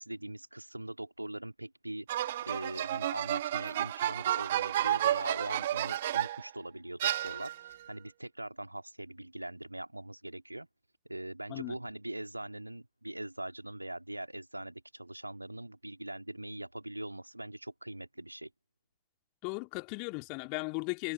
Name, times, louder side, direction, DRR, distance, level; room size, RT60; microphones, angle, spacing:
voice 1, 0.0-10.7 11.1-18.5, right 1 dB, 85° right, 3.0 m, -42 dB
sound 1, 2.1-6.5 7.0-7.8, right 12 dB, 60° right, 1.6 m, -31 dB
voice 2, 19.4-21.1, left 37 dB, 45° left, 2.2 m, -36 dB
figure-of-eight pair, 90°, 0 cm